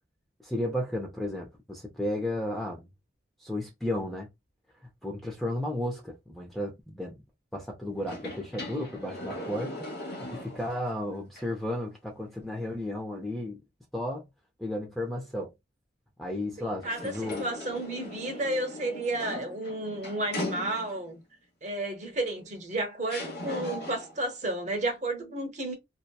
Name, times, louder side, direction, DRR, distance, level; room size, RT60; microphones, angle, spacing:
voice 1, 0.4-2.8 3.4-4.3 5.0-7.2 7.5-9.9 10.2-13.6 13.9-14.2 14.6-15.5 16.2-17.4, left 1 dB, ahead, 0.4 m, -33 dB
sound 1, 8.0-10.9 11.4-11.5 16.8-21.2 22.3-22.4 23.1-24.3, left 1 dB, 55° left, 0.9 m, -39 dB
voice 2, 16.6-21.2 21.6-25.7, right 2 dB, 40° right, 0.8 m, -32 dB
2.7 x 2.1 x 2.2 m
head